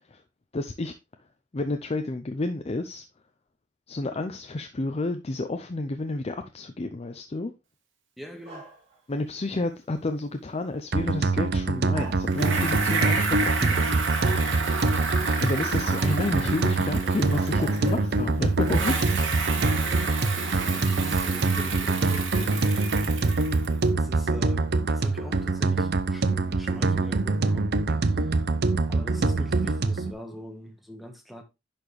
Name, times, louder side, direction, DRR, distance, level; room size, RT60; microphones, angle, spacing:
voice 1, 0.5-0.9 1.5-3.0 3.9-7.5 9.1-13.9 15.4-19.2, left 2 dB, 35° left, 0.5 m, -30 dB
voice 2, 8.2-8.7 20.6-22.7 23.9-27.7 28.1-28.4 28.9-31.4, equal, ahead, 1.2 m, -42 dB
sound 1, 8.4-9.0 10.7-10.8 11.9-12.8 13.5-14.0 16.6-16.7 17.2-18.3 18.6-18.9, right 4 dB, 35° right, 3.1 m, -40 dB
sound 2, 10.9-30.1, right 3 dB, 55° right, 0.6 m, -25 dB
Bicycle, 12.3-18.2 18.6-23.8, right 4 dB, 85° right, 2.0 m, -31 dB
10.5 x 4.4 x 3.2 m
head